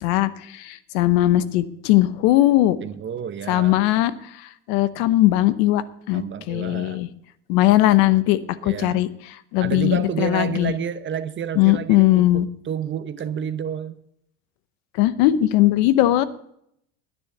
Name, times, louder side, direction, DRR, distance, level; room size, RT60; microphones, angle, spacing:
voice 1, 0.0-2.8 3.5-4.1 4.4-7.1 7.5-9.1 9.5-10.7 11.6-12.5 15.0-16.3, left 15 dB, 70° left, 0.9 m, -19 dB
voice 2, 2.8-3.8 6.1-7.0 8.6-9.0 9.6-14.0, right 8 dB, 30° right, 0.8 m, -30 dB
10.0 x 10.0 x 6.6 m
supercardioid pair, 95°, 36 cm